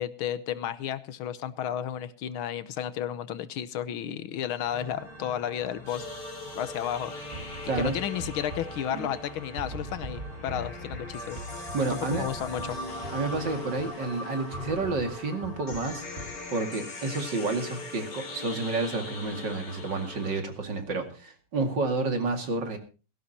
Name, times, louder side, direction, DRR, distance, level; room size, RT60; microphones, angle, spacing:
voice 1, 0.0-6.1 6.6-7.3 7.8-11.4 11.9-12.8, left 10 dB, 80° left, 14 dB, 1.7 m, -33 dB
sound 1, 4.6-13.5, right 1 dB, 75° right, 6.5 m, -46 dB
sound 2, 5.9-20.4, left 2 dB, 55° left, 3.3 m, -40 dB
sound 3, 7.3-9.2 9.6-14.0 14.5-16.5, right 1 dB, 30° right, 1.9 m, -42 dB
voice 2, 7.6-7.9 8.9-9.1 11.7-12.3 13.1-16.0 16.5-22.8, right 3 dB, 55° right, 5 dB, 2.9 m, -30 dB
18.0 x 16.0 x 2.9 m, 0.34 s
omnidirectional pair, 2.3 m